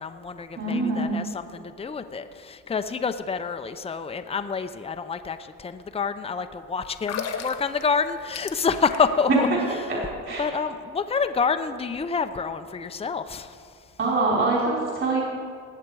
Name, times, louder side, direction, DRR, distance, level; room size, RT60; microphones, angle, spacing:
voice 1, 0.0-9.5 9.8-9.9 10.4-13.6, left 5 dB, 20° left, 9 dB, 0.7 m, -28 dB
voice 2, 0.6-1.1 9.3-9.4 9.9-10.0 10.3-10.4 14.0-15.2, right 3 dB, 40° right, -4 dB, 3.9 m, -23 dB
sound 1, 6.9-9.3 9.5-9.7, left 6 dB, 50° left, 1.3 m, -34 dB
18.5 x 7.5 x 4.8 m, 2.2 s
supercardioid pair, 70°, 32 cm